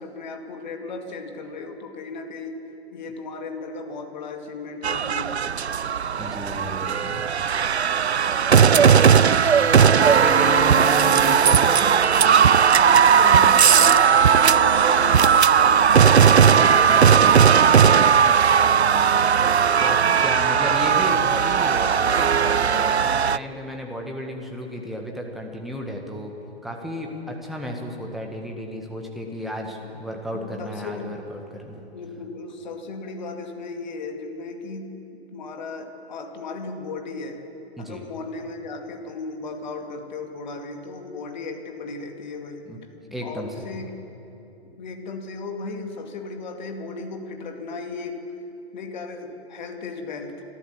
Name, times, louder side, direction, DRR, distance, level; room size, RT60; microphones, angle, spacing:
voice 1, 0.0-2.6 2.9-5.9 8.3-8.7 10.0-10.3 12.7-16.2 20.0-20.6 29.6-30.0 30.3-31.1 31.7-35.0 35.3-37.4 37.8-42.7 43.2-43.9 44.8-48.2 48.7-50.4, left 3 dB, 45° left, 4 dB, 2.4 m, -36 dB
sound 1, 4.8-23.4, right 7 dB, 85° right, 0.5 m, -17 dB
voice 2, 6.2-7.1 9.8-11.9 16.5-19.1 19.8-26.3 26.6-31.8 37.8-38.0 42.6-42.8 43.1-43.7, equal, ahead, 1 dB, 1.6 m, -33 dB
26.0 x 13.5 x 7.3 m, 2.9 s
figure-of-eight pair, 125°, 32 cm